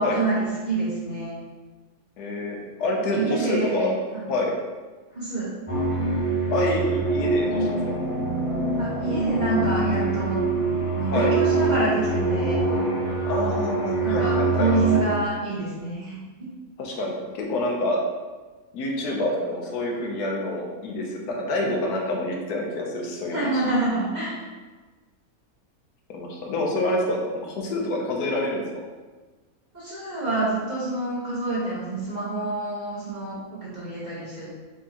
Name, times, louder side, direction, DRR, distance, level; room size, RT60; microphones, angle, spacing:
voice 1, 0.0-1.4 3.0-3.9 5.1-5.5 8.8-10.4 10.9-12.6 14.0-16.5 23.3-24.4 29.7-34.5, right 2 dB, 30° right, -8 dB, 1.2 m, -27 dB
voice 2, 2.2-3.9 4.3-4.5 6.5-7.8 11.1-11.3 13.2-14.7 16.8-18.0 18.7-23.6 26.1-28.6, left 1 dB, 85° left, 0 dB, 1.3 m, -27 dB
sound 1, 5.7-15.0, right 3 dB, 25° left, 0.8 m, -24 dB
4.4 x 3.6 x 2.9 m, 1.3 s
omnidirectional pair, 1.6 m